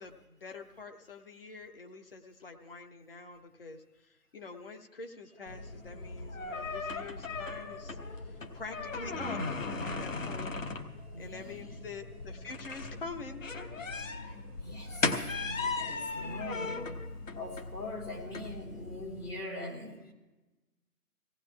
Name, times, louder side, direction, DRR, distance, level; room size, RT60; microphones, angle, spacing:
voice 1, 0.0-10.6 11.2-13.4, left 4 dB, 40° left, 4 dB, 0.9 m, -46 dB
sound 1, 5.3-15.3, right 1 dB, 25° right, 0.7 m, -58 dB
sound 2, 5.5-19.3, left 3 dB, 60° left, 1.2 m, -38 dB
voice 2, 11.1-11.8 14.2-20.1, left 1 dB, 90° left, -2 dB, 3.8 m, -43 dB
23.5 x 17.5 x 2.4 m, 1.1 s
figure-of-eight pair, 140°, 45 cm